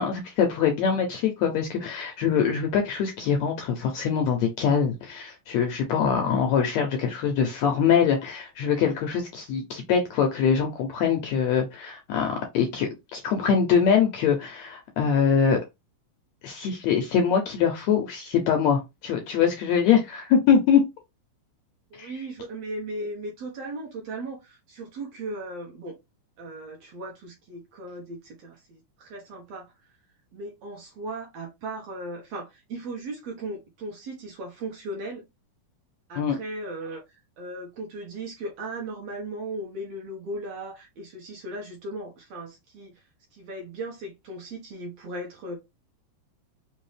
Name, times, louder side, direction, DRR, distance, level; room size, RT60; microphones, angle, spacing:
voice 1, 0.0-15.6 16.4-20.8 22.0-22.1 36.2-36.4, left 7 dB, 75° left, 1.7 m, -23 dB
voice 2, 21.9-26.0 26.4-29.7 30.3-35.3 36.1-43.0 43.3-45.6, right 2 dB, 60° right, 1.9 m, -37 dB
5.3 x 2.7 x 3.2 m
omnidirectional pair, 3.8 m